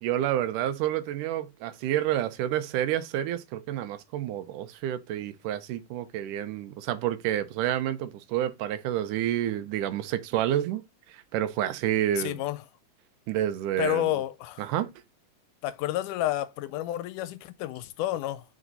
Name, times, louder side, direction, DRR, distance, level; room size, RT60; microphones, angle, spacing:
voice 1, 0.0-10.8 11.1-12.4 13.3-14.1 14.6-14.9, right 12 dB, 80° right, 2.2 m, -29 dB
voice 2, 12.2-12.6 13.8-14.7 15.6-18.4, left 14 dB, 80° left, 2.0 m, -30 dB
5.0 x 4.8 x 4.0 m
omnidirectional pair, 3.7 m